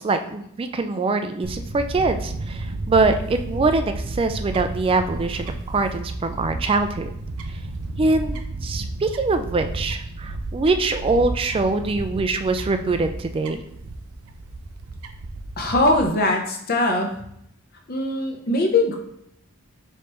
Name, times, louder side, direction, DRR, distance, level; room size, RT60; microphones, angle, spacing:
voice 1, 0.0-7.1 8.0-13.6, right 3 dB, 25° right, 7 dB, 0.3 m, -23 dB
Fowl / Bird, 1.4-16.1, right 2 dB, 85° right, 0.5 m, -32 dB
voice 2, 15.6-17.2 17.9-19.0, left 2 dB, 45° left, 3 dB, 0.7 m, -21 dB
4.8 x 3.2 x 3.0 m, 0.73 s
head